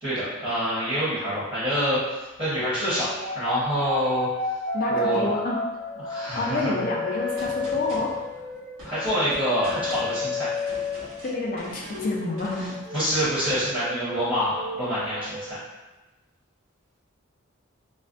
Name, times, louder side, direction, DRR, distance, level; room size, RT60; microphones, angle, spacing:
voice 1, 0.0-3.1 3.3-4.3 4.9-5.3 6.0-6.8 8.8-10.5 12.9-15.6, equal, 25° right, -12 dB, 0.9 m, -26 dB
sound 1, 2.4-11.6 11.9-15.5, left 3 dB, 45° right, 0.5 m, -32 dB
voice 2, 4.7-5.6 6.3-8.1 11.2-12.8, left 2 dB, 40° left, -2 dB, 0.3 m, -28 dB
Gunshot gunfire, 7.4-13.9, equal, 75° right, 1.1 m, -43 dB
2.3 x 2.1 x 2.4 m, 1.1 s
head